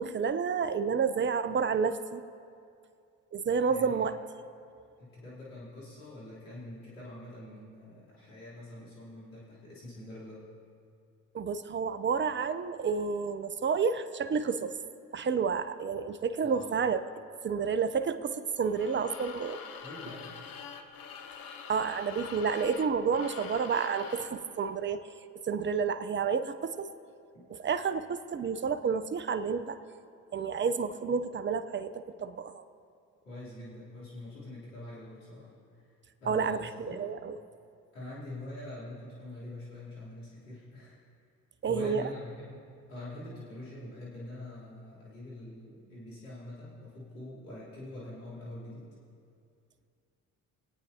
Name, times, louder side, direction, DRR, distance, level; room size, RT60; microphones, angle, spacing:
voice 1, 0.0-2.2 3.3-4.2 11.3-14.7 15.1-17.0 17.4-19.6 21.7-25.1 25.4-26.9 27.6-29.8 30.3-32.6 36.3-37.4 41.6-42.0, right 6 dB, 30° right, 11 dB, 0.7 m, -30 dB
voice 2, 3.7-4.0 5.0-10.4 16.4-16.8 19.8-20.4 27.3-27.4 33.2-35.5 36.2-37.0 37.9-41.0 41.7-42.6 42.9-48.9, left 1 dB, 90° left, -9 dB, 3.4 m, -44 dB
sound 1, 18.6-24.4, left 7 dB, 65° left, 0.9 m, -45 dB
23.0 x 8.9 x 2.8 m, 2.4 s
hypercardioid pair, 55°, 37 cm